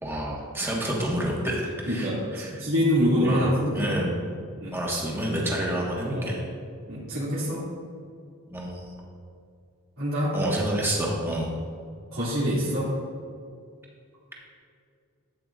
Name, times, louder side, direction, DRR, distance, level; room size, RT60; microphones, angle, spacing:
voice 1, 0.0-2.5 3.2-3.4 3.7-4.1 4.7-6.4 8.5-9.0 10.3-11.5, right 1 dB, 10° right, -3 dB, 1.5 m, -29 dB
voice 2, 1.9-4.0 4.6-4.8 6.1-6.3 6.8-7.6 10.0-10.4 11.3-11.4 12.1-12.9, equal, 75° right, -10 dB, 2.5 m, -25 dB
13.0 x 8.8 x 2.5 m, 2.3 s
head